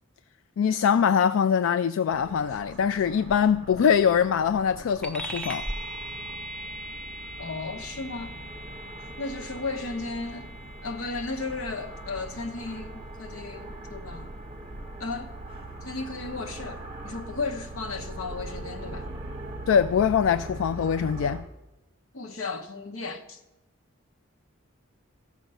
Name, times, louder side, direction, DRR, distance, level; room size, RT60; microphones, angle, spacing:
voice 1, 0.6-5.7 19.7-21.4, left 7 dB, 70° left, 0.3 m, -23 dB
sound 1, 2.1-21.4, right 2 dB, 30° right, 1.2 m, -41 dB
sound 2, 5.0-14.9, equal, 5° left, 0.8 m, -40 dB
voice 2, 7.4-8.3 9.2-10.5 10.8-14.3 15.0-15.3 15.8-19.1 22.1-23.4, left 3 dB, 90° left, 1.1 m, -35 dB
14.5 x 6.1 x 5.5 m
head